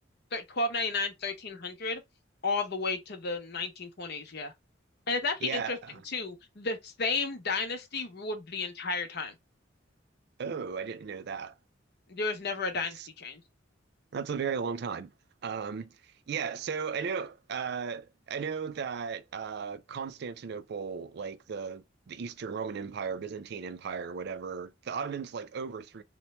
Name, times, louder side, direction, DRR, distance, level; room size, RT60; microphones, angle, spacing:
voice 1, 0.3-2.0 2.4-4.5 5.1-5.8 6.0-9.3 12.1-13.4, left 3 dB, 55° left, 0.8 m, -33 dB
voice 2, 5.4-6.0 10.4-11.5 12.9-13.1 14.1-15.1 15.4-26.0, right 6 dB, 60° right, 0.4 m, -36 dB
3.0 x 2.2 x 4.1 m
head